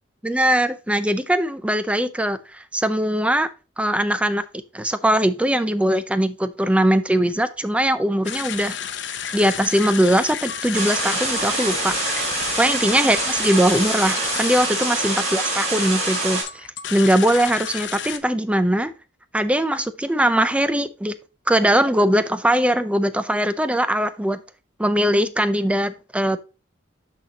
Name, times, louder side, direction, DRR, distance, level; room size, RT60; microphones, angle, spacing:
voice 1, 0.2-3.5 3.8-4.4 4.7-8.8 9.3-12.3 12.6-18.9 19.3-21.1 21.5-24.4 24.8-26.4, right 1 dB, 5° right, 0.5 m, -21 dB
sound 1, 8.2-18.2, left 8 dB, 65° left, 0.8 m, -32 dB
sound 2, 10.7-16.4, right 2 dB, 35° right, 3.6 m, -25 dB
12.0 x 4.2 x 2.9 m
head